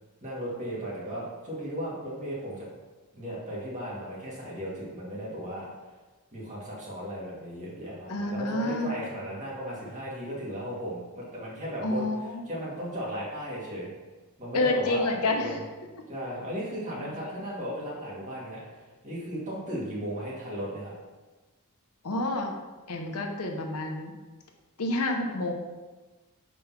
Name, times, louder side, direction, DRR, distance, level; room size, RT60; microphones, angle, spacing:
voice 1, 0.2-2.7 3.1-5.7 6.3-13.9 14.4-15.6 16.1-20.9, equal, 35° right, -6 dB, 2.0 m, -36 dB
voice 2, 8.1-8.9 11.8-12.4 14.5-15.5 16.9-17.1 22.0-22.5 22.9-24.2 24.8-25.5, left 2 dB, 85° left, 3 dB, 0.9 m, -28 dB
5.0 x 3.9 x 5.8 m, 1.2 s
head